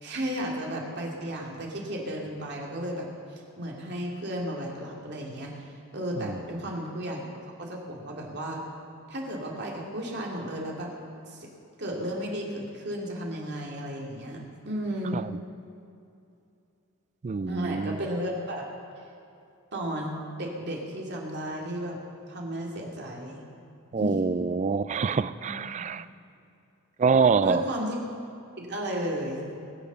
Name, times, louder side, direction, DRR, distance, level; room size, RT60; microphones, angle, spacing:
voice 1, 0.0-3.1 3.6-5.5 5.9-7.3 7.6-8.6 9.1-10.9 11.2-11.5 11.8-15.2 17.4-18.7 19.7-22.0 22.3-23.4 24.0-24.2 25.4-25.9 27.4-28.0 28.6-29.6, equal, 50° right, -1 dB, 2.5 m, -34 dB
voice 2, 17.2-18.0 23.9-26.0 27.0-27.7, right 5 dB, 35° right, 14 dB, 0.3 m, -25 dB
21.0 x 7.2 x 6.8 m, 2.7 s
head